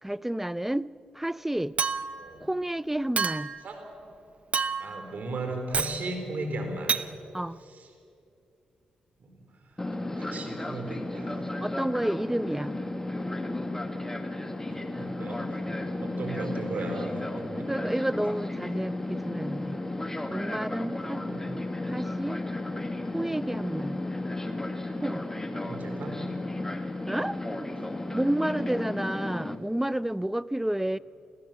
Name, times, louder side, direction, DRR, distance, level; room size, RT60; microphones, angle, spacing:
voice 1, 0.0-0.9 1.1-1.8 2.4-3.5 7.3-7.6 11.6-12.7 17.5-19.8 20.3-21.4 21.9-22.4 23.1-24.0 25.0-25.2 27.1-27.4 28.1-31.0, right 1 dB, 10° right, 19 dB, 0.5 m, -30 dB
Chink clink, 1.8-2.3 3.2-3.6 4.5-5.0 5.7-6.0 6.9-7.1, right 5 dB, 45° right, 0.8 m, -28 dB
voice 2, 2.1-2.4 3.6-3.8 4.8-6.9 7.6-7.9 9.2-11.6 12.6-12.7 14.7-17.7 21.1-21.6 25.7-26.2, right 2 dB, 65° right, 4 dB, 4.3 m, -37 dB
Fixed-wing aircraft airplane, 9.8-29.5, left 2 dB, 15° left, 1.9 m, -34 dB
25.5 x 16.0 x 7.5 m, 2.6 s
cardioid pair, 65°, 3 cm